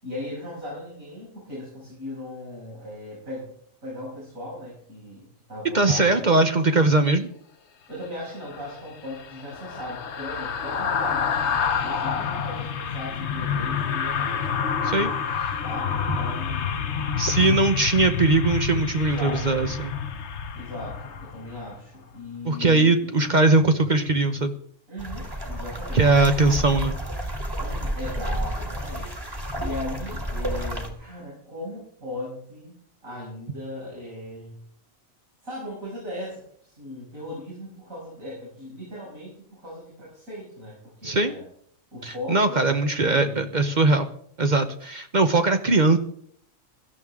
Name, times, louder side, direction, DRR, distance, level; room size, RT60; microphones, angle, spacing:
voice 1, 0.0-3.5 3.8-6.5 7.9-14.4 15.6-16.9 17.3-17.6 19.0-19.6 20.5-23.2 24.9-26.0 27.6-32.8 33.0-34.6 35.4-41.4 41.9-43.5, left 1 dB, 80° right, -6 dB, 6.7 m, -38 dB
voice 2, 5.7-7.3 14.8-15.6 17.2-19.9 22.5-24.6 25.9-27.0 41.0-41.3 42.0-44.1 44.4-46.0, right 3 dB, 40° right, 7 dB, 0.9 m, -20 dB
sound 1, 8.4-21.8 22.1-22.3, left 7 dB, 60° left, 1.1 m, -28 dB
sound 2, 25.0-30.9, equal, 15° right, 1.8 m, -30 dB
16.5 x 13.0 x 3.6 m, 0.63 s
omnidirectional pair, 1.4 m